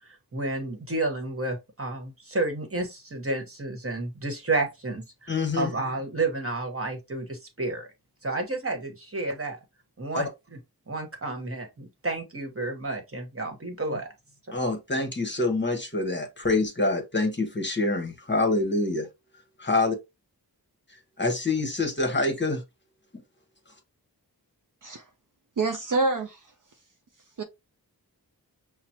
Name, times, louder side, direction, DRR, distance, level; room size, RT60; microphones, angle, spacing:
voice 1, 0.3-7.9 8.2-9.6 10.0-10.3 10.9-14.1, right 2 dB, 35° right, 1.2 m, -31 dB
voice 2, 5.3-5.7 10.1-10.2 14.5-19.1 19.6-20.0 21.2-22.6, left 2 dB, 30° left, 1.0 m, -26 dB
voice 3, 25.6-26.4 27.4-27.5, right 3 dB, 55° right, 0.6 m, -26 dB
5.8 x 2.0 x 2.8 m
wide cardioid pair, 55°, 38 cm